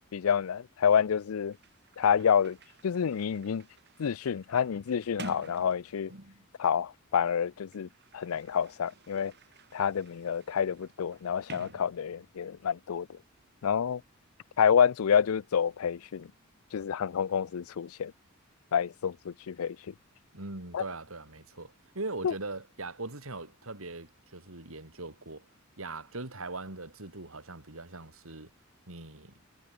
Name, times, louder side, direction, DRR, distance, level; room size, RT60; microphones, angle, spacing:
voice 1, 0.1-1.6 2.0-2.6 2.8-3.6 4.0-6.1 6.6-9.3 9.7-13.2 13.6-14.0 14.6-16.3 16.7-18.1 18.7-19.9 20.7-20.8 22.2-22.3, left 7 dB, 85° left, 0.4 m, -28 dB
Sliding door, 1.5-6.6 7.5-12.5, right 2 dB, 55° right, 5.5 m, -50 dB
voice 2, 20.3-25.5 25.8-28.5 28.9-29.4, right 2 dB, 75° right, 3.4 m, -41 dB
head